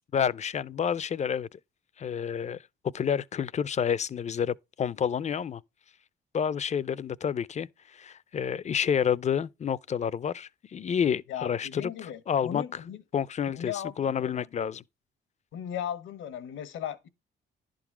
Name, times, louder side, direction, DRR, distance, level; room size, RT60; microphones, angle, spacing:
voice 1, 0.1-1.6 2.0-2.6 2.9-5.6 6.3-12.8 13.1-14.8, left 8 dB, 35° left, 0.5 m, -29 dB
voice 2, 11.3-13.0 13.5-14.5 15.5-17.1, left 10 dB, 80° left, 1.1 m, -37 dB
11.0 x 3.8 x 5.9 m
cardioid pair, 90°, 20 cm